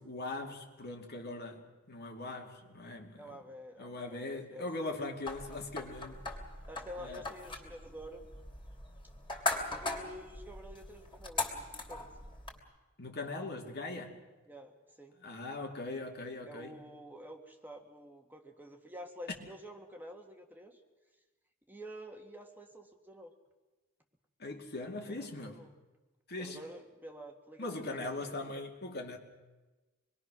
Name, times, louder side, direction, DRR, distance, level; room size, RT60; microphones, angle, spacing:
voice 1, 0.0-3.4 3.8-6.3 7.0-7.3 13.0-14.2 15.2-16.8 24.4-25.6 26.3-26.6 27.6-29.2, left 2 dB, 55° left, 2.6 m, -40 dB
voice 2, 3.2-4.7 6.7-8.2 9.8-11.6 11.9-12.1 14.5-15.2 16.4-20.8 21.7-23.3 25.2-25.7 26.4-28.6, equal, 10° right, 1.7 m, -49 dB
sound 1, 5.3-12.6, left 2 dB, 25° left, 3.2 m, -40 dB
26.0 x 21.5 x 6.3 m
head